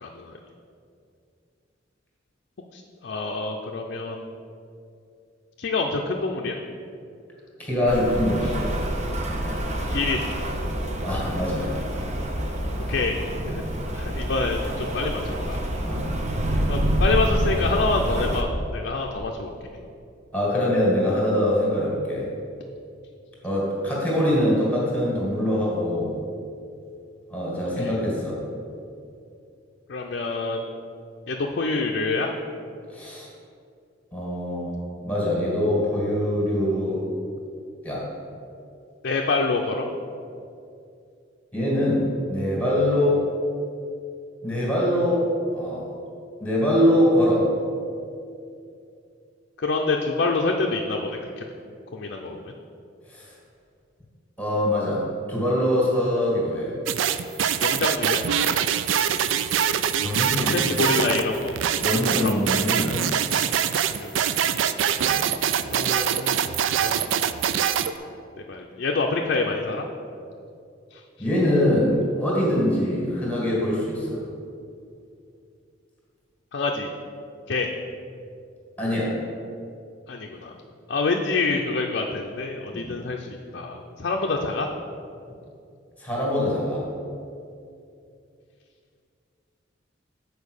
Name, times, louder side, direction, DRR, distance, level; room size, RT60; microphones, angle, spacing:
voice 1, 0.0-0.3 2.7-4.3 5.6-6.6 9.9-10.2 12.9-13.2 13.5-13.6 13.9-15.2 15.5-15.6 16.7-19.5 27.8-27.9 29.9-30.6 31.3-32.3 39.0-39.9 49.6-51.4 51.9-52.5 57.6-58.2 60.4-61.5 62.2-62.6 63.9-64.3 65.7-66.4 66.8-67.1 67.7-67.8 68.5-69.8 70.9-71.0 76.5-76.9 77.5-77.7 80.1-80.5 80.9-83.3 83.5-84.7, left 3 dB, 55° left, 1 dB, 0.5 m, -26 dB
voice 2, 7.6-8.7 9.3-9.4 11.0-11.9 15.8-16.1 20.3-22.3 23.4-26.2 27.3-28.4 32.9-33.3 34.1-34.7 35.0-37.0 37.8-38.0 41.5-43.2 44.4-45.2 45.5-45.9 46.4-47.5 53.1-53.3 54.4-55.0 55.3-56.7 60.0-60.7 61.8-63.1 65.0-65.2 71.2-74.2 78.8-79.1 82.7-82.9 86.0-86.8, left 1 dB, 10° left, -5 dB, 1.8 m, -23 dB
Rain, 7.9-18.4, right 1 dB, 35° right, 0.8 m, -27 dB
sound 1, 56.9-67.9, right 9 dB, 80° right, 0.4 m, -24 dB
7.3 x 4.6 x 6.4 m, 2.5 s
head